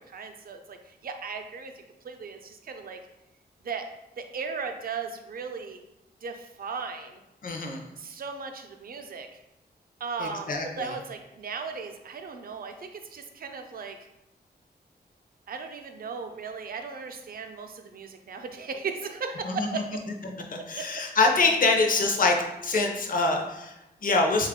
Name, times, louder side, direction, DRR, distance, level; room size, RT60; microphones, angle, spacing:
voice 1, 0.0-1.7 2.0-3.0 3.6-3.9 4.2-5.8 6.2-7.2 8.0-9.4 10.0-14.0 15.5-20.0 20.6-21.0, right 5 dB, 55° right, 6 dB, 0.4 m, -37 dB
voice 2, 7.4-7.9 10.2-10.9 19.4-19.8 20.5-24.5, left 3 dB, 50° left, 2 dB, 0.6 m, -25 dB
3.4 x 2.3 x 3.6 m, 0.93 s
wide cardioid pair, 105°, 18 cm